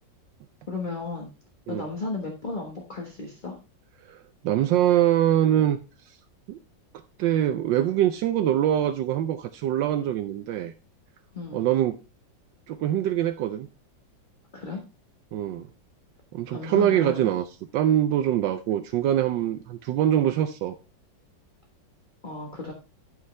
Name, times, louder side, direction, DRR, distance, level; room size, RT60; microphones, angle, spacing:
voice 1, 0.7-1.3 1.7-3.6 11.3-11.7 14.5-14.8 16.5-17.3 22.2-22.7, left 3 dB, 30° left, 1.4 m, -34 dB
voice 2, 4.4-5.8 6.1-6.2 6.5-6.6 7.2-10.7 11.5-12.0 12.7-13.7 15.3-15.7 16.3-17.5 17.7-20.8, right 11 dB, 80° right, 1.3 m, -23 dB
13.0 x 5.5 x 3.2 m
omnidirectional pair, 2.0 m